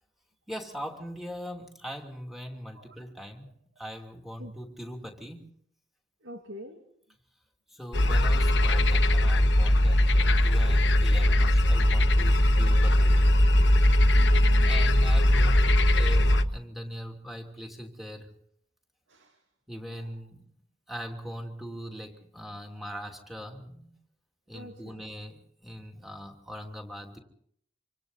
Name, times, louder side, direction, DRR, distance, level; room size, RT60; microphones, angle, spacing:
voice 1, 0.5-5.5 7.7-13.3 14.6-18.3 19.7-20.4 20.9-24.0 24.5-27.2, equal, ahead, 2 dB, 2.7 m, -41 dB
voice 2, 6.2-6.8 14.1-14.7 19.1-19.3 24.5-25.0, equal, 85° right, 4 dB, 2.4 m, -44 dB
sound 1, 7.9-16.4, left 1 dB, 70° left, 1.2 m, -20 dB
26.5 x 26.0 x 4.1 m, 0.66 s
head